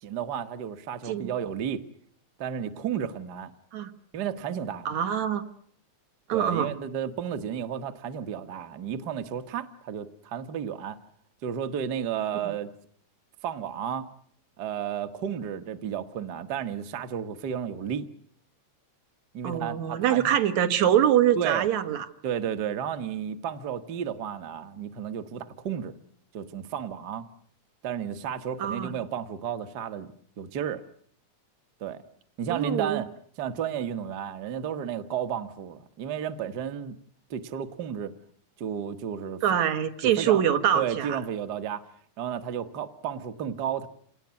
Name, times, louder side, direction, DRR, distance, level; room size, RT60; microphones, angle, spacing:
voice 1, 0.0-1.8 2.4-3.5 4.1-4.9 6.3-11.0 11.4-12.7 13.4-14.1 14.6-18.1 19.3-20.3 21.3-21.7 22.2-25.9 26.3-27.3 27.8-30.1 30.4-30.8 31.8-32.0 32.4-33.1 33.4-37.0 37.3-38.1 38.6-39.4 40.0-40.4 40.7-41.9 42.2-43.9, right 8 dB, 50° right, 10 dB, 1.3 m, -32 dB
voice 2, 4.9-5.4 6.3-6.7 19.4-22.1 28.6-28.9 32.5-33.0 39.4-41.2, right 10 dB, 70° right, 9 dB, 2.7 m, -24 dB
28.0 x 19.0 x 9.5 m, 0.64 s
omnidirectional pair, 3.4 m